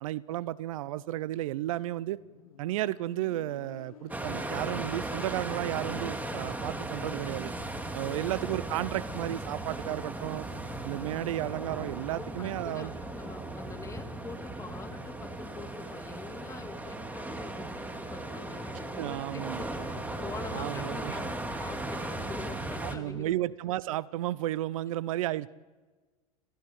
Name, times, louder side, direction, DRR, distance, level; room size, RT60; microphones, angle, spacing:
voice 1, 0.0-2.2 2.6-7.5 7.9-10.5 10.8-12.9 19.0-19.6 20.5-21.2 22.8-25.5, right 14 dB, 70° right, 21 dB, 0.6 m, -33 dB
Motorcycle, 1.6-5.1, left 8 dB, 85° left, 1.7 m, -54 dB
sound 1, 4.1-22.9, right 2 dB, 10° right, 2.5 m, -37 dB
voice 2, 12.2-19.7 20.2-23.5, left 4 dB, 15° left, 5 dB, 2.7 m, -44 dB
28.5 x 14.5 x 7.4 m, 1.3 s
hypercardioid pair, 95°, 18 cm